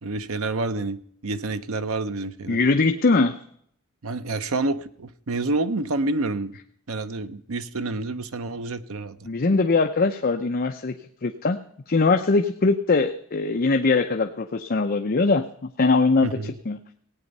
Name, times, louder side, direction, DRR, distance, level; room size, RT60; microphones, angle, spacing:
voice 1, 0.0-2.6 4.0-6.6 6.9-9.2 16.2-16.5, right 2 dB, 75° right, 12 dB, 0.8 m, -28 dB
voice 2, 2.5-3.4 9.2-10.9 11.2-11.6 11.9-15.5 15.8-16.8, left 3 dB, 45° left, 6 dB, 0.7 m, -21 dB
17.0 x 9.0 x 5.4 m, 0.65 s
head